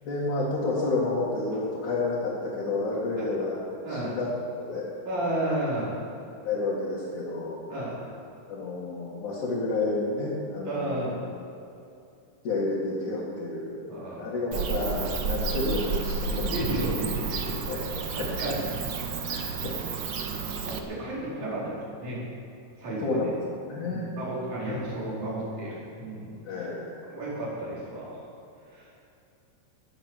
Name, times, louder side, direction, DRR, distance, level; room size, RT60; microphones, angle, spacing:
voice 1, 0.0-3.6 3.9-4.9 6.4-7.6 8.5-11.1 12.4-16.5 17.7-18.3 19.3-19.8 23.0-23.3 23.7-24.1 26.4-27.0, left 3 dB, 75° left, -7 dB, 3.8 m, -30 dB
voice 2, 3.8-4.2 5.0-5.9 7.7-8.1 10.6-11.1 13.9-14.3 16.3-17.9 18.1-18.7 20.2-22.2 22.8-23.2 23.9-26.3 27.0-28.2 28.7-28.9, right 1 dB, 60° right, -8 dB, 6.1 m, -32 dB
Bird / Cricket, 14.5-20.8, right 5 dB, 80° right, 1.0 m, -31 dB
20.5 x 8.1 x 7.5 m, 2.7 s
omnidirectional pair, 3.6 m